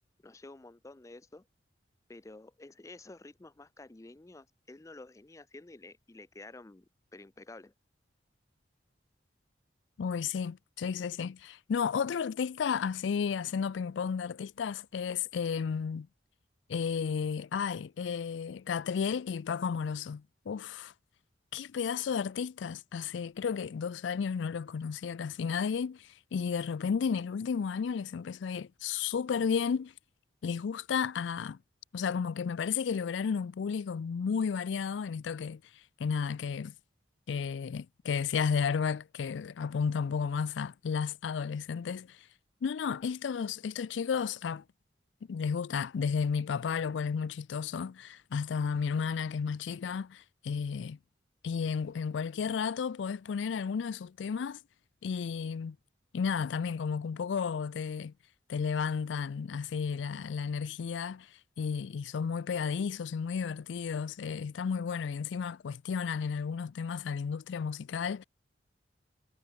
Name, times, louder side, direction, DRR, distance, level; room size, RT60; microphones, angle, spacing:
voice 1, 0.2-1.5 2.1-7.7, left 2 dB, 15° left, 0.4 m, -50 dB
voice 2, 10.0-16.1 16.7-20.9 21.5-29.9 30.4-31.6 31.9-35.6 36.0-36.7 37.3-42.3 42.6-44.6 45.3-51.0 51.4-54.6 55.0-55.8 56.1-58.1 58.5-68.2, left 6 dB, 85° left, 0.4 m, -33 dB
head